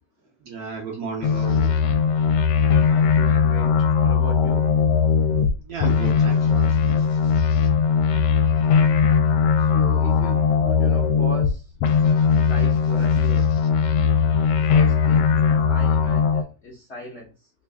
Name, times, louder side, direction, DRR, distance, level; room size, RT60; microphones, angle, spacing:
voice 1, 0.4-1.7 5.7-7.1, right 5 dB, 65° right, 1.0 m, -33 dB
sound 1, 1.2-5.5 5.8-11.5 11.8-16.4, left 6 dB, 80° left, 1.3 m, -19 dB
voice 2, 2.9-4.7 9.6-11.8 12.4-13.5 14.6-17.5, left 2 dB, 55° left, 0.7 m, -38 dB
3.3 x 2.4 x 3.4 m
omnidirectional pair, 2.1 m